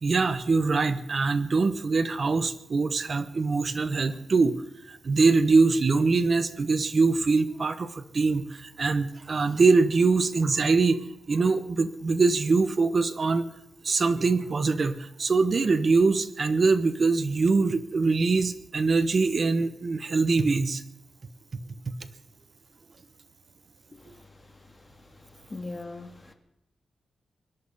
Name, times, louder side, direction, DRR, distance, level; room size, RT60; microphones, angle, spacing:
voice 1, 0.0-4.5 4.9-13.4 13.8-20.8, right 4 dB, 40° right, 11 dB, 1.1 m, -23 dB
voice 2, 25.5-26.3, left 2 dB, 20° left, 5 dB, 2.1 m, -38 dB
24.5 x 10.5 x 5.6 m, 0.86 s
wide cardioid pair, 160°, 0 cm